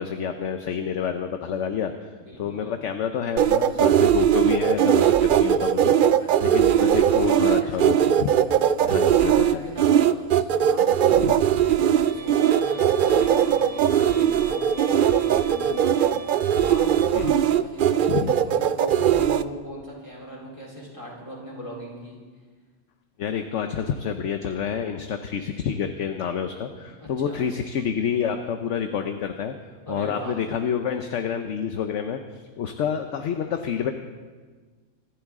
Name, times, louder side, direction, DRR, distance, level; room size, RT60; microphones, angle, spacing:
voice 1, 0.0-1.9 2.4-8.3 8.8-9.6 11.1-11.3 17.1-17.3 17.8-18.3 23.2-29.6 29.9-33.9, left 7 dB, 65° left, 7 dB, 1.0 m, -28 dB
voice 2, 2.2-2.7 6.2-8.0 9.1-22.2 27.0-27.4 29.9-30.3, equal, 20° left, -4 dB, 4.1 m, -39 dB
sound 1, 3.4-19.4, right 9 dB, 85° right, 0.4 m, -20 dB
Bowed string instrument, 12.1-17.1, right 2 dB, 45° right, 0.9 m, -40 dB
25.0 x 12.0 x 3.7 m, 1.4 s
omnidirectional pair, 1.5 m